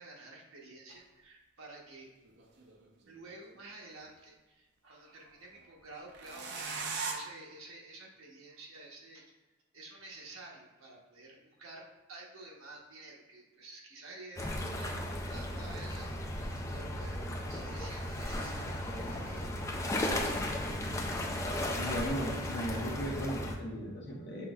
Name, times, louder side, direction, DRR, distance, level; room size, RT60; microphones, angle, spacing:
voice 1, 0.0-2.1 3.1-9.2 9.7-19.5, right 2 dB, 70° right, -2 dB, 1.0 m, -51 dB
sound 1, 0.9-1.0 2.3-3.3 6.1-7.1, right 4 dB, 55° right, 0.6 m, -38 dB
sound 2, 14.4-23.6, left 1 dB, 15° left, 0.3 m, -35 dB
voice 2, 21.8-24.5, equal, 55° left, -3 dB, 0.9 m, -37 dB
6.0 x 3.0 x 2.3 m, 1.1 s
head